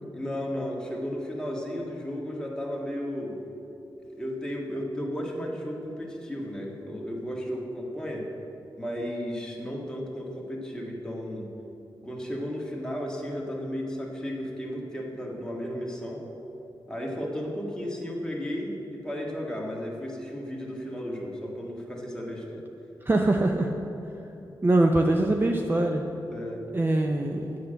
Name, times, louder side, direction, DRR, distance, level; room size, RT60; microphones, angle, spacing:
voice 1, 0.1-3.4 4.1-8.3 8.8-11.5 12.0-16.2 16.9-22.6 26.3-26.7, equal, 10° left, -2 dB, 1.7 m, -34 dB
voice 2, 23.1-23.7 24.6-26.0 26.7-27.6, right 2 dB, 25° right, 3 dB, 0.6 m, -23 dB
8.1 x 6.5 x 7.7 m, 2.9 s
cardioid pair, 90°, 8 cm